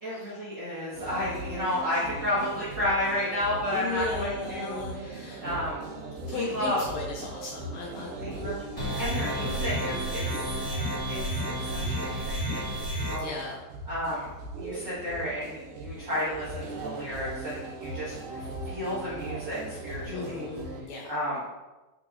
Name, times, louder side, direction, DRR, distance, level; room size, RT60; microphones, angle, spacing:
voice 1, 0.0-4.8 5.4-5.8 6.3-6.8 8.2-10.4 11.1-11.2 11.6-12.7 13.0-13.3 13.9-14.3 14.5-20.4 21.1-21.5, left 1 dB, 45° right, -10 dB, 1.4 m, -32 dB
sound 1, 0.9-20.8, right 2 dB, 80° right, 2.5 m, -39 dB
voice 2, 3.7-5.4 6.1-8.5 9.2-9.5 13.2-13.7 20.1-21.2, left 3 dB, 85° left, -1 dB, 1.6 m, -36 dB
sound 2, 8.8-13.1, equal, 15° left, 0.8 m, -31 dB
8.5 x 4.8 x 2.5 m, 1.1 s
omnidirectional pair, 4.2 m